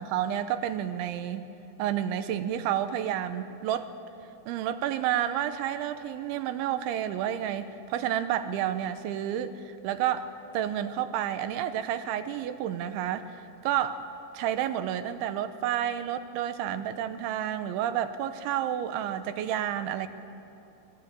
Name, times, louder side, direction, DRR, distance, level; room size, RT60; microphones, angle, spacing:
voice 1, 0.0-1.5 1.8-3.9 4.5-13.3 13.6-14.1 14.3-20.1, right 10 dB, 85° right, 10 dB, 3.3 m, -30 dB
29.0 x 21.5 x 8.4 m, 3.0 s
omnidirectional pair, 5.4 m